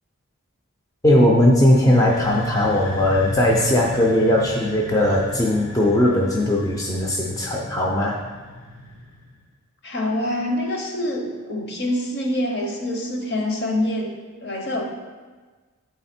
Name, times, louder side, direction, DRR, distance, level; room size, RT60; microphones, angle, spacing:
voice 1, 1.0-8.2, left 1 dB, 15° left, -1 dB, 0.5 m, -18 dB
sound 1, 1.7-9.4, equal, 70° left, 1.2 m, -35 dB
voice 2, 9.8-14.1 14.4-14.8, left 1 dB, 50° left, 2 dB, 0.8 m, -25 dB
8.3 x 4.1 x 4.3 m, 1.4 s
head